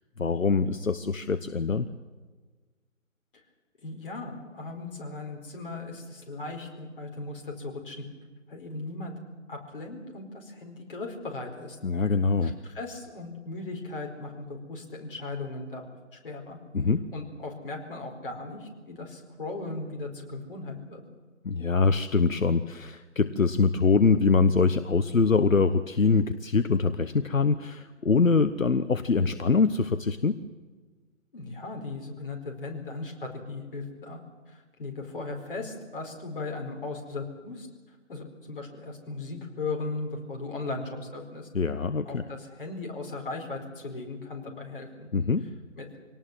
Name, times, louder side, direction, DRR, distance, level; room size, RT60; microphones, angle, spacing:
voice 1, 0.2-1.9 11.8-12.5 16.7-17.0 21.4-30.4 41.5-42.2 45.1-45.5, left 4 dB, 75° left, 12 dB, 1.1 m, -24 dB
voice 2, 3.8-8.0 8.5-9.1 9.5-11.8 12.4-16.6 17.1-21.0 31.3-34.2 34.5-37.7 38.1-41.5 42.0-45.1 45.8-45.9, left 3 dB, 40° left, 1 dB, 4.7 m, -37 dB
24.5 x 18.5 x 7.6 m, 1.4 s
figure-of-eight pair, 155°, 40 cm